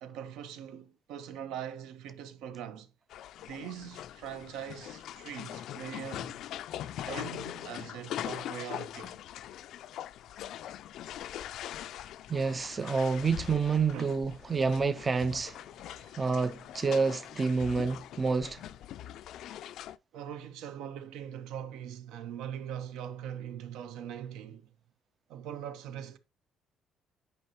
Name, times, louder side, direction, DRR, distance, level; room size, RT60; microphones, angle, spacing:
voice 1, 0.0-2.9 3.5-6.4 7.1-9.2 13.9-14.1 15.9-16.1 20.1-24.7 25.3-26.2, right 9 dB, 80° right, 1.0 m, -42 dB
sound 1, 3.1-20.0, left 11 dB, 55° left, 0.4 m, -42 dB
voice 2, 12.3-15.6 16.2-18.6, right 4 dB, 20° right, 0.4 m, -28 dB
9.5 x 5.4 x 2.9 m
cardioid pair, 175°, 0 cm